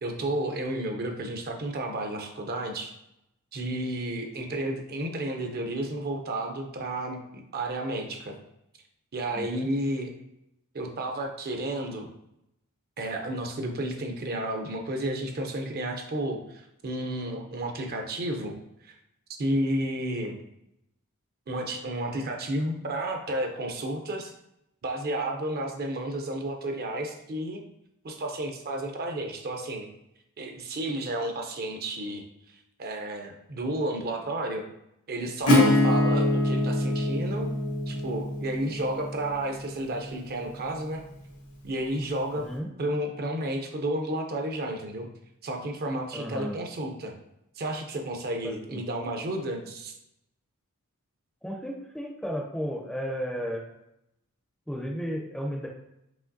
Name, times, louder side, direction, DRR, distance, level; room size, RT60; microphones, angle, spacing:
voice 1, 0.0-2.9 3.5-8.4 9.1-10.1 10.7-12.1 13.0-18.5 18.8-18.9 19.4-20.4 21.5-24.3 24.8-27.6 28.0-29.9 30.4-32.2 32.5-34.6 35.1-37.5 37.9-41.0 41.6-42.5 42.8-45.1 45.4-47.1 47.6-49.9, right 1 dB, 45° right, 3 dB, 0.6 m, -32 dB
voice 2, 9.3-9.7 42.3-42.7 46.1-46.5 48.4-48.8 51.4-53.6 54.7-55.7, equal, 5° left, 0 dB, 0.5 m, -34 dB
Acoustic guitar / Strum, 35.5-41.0, left 1 dB, 90° left, 1.1 m, -25 dB
4.9 x 3.1 x 2.6 m, 0.82 s
head